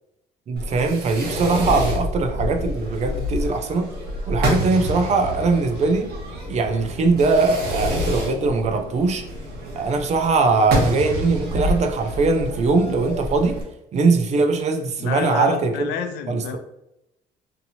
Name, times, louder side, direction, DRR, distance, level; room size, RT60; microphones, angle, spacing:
voice 1, 0.5-3.9 4.3-6.1 6.5-9.2 9.8-13.6 13.9-15.9 16.3-16.6, right 3 dB, 40° right, 5 dB, 0.5 m, -21 dB
Fireworks, 0.6-13.6, equal, 75° right, 1.0 m, -28 dB
voice 2, 15.0-16.6, left 7 dB, 85° left, 7 dB, 0.4 m, -29 dB
2.8 x 2.7 x 2.7 m, 0.86 s
cardioid pair, 110°, 17 cm